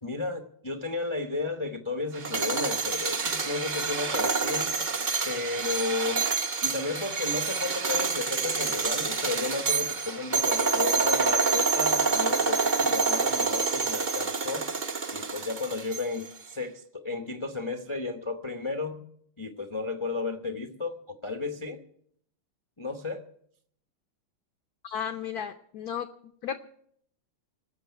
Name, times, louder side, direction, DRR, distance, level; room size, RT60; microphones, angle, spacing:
voice 1, 0.0-4.8 5.2-6.2 6.6-14.7 15.1-19.0 19.4-21.8 22.8-23.2, left 3 dB, 45° left, 6 dB, 0.3 m, -33 dB
sound 1, 2.1-16.3, right 4 dB, 45° right, 0.6 m, -27 dB
voice 2, 24.8-26.6, left 8 dB, 70° left, 8 dB, 0.9 m, -35 dB
19.5 x 6.6 x 9.4 m, 0.67 s
omnidirectional pair, 2.4 m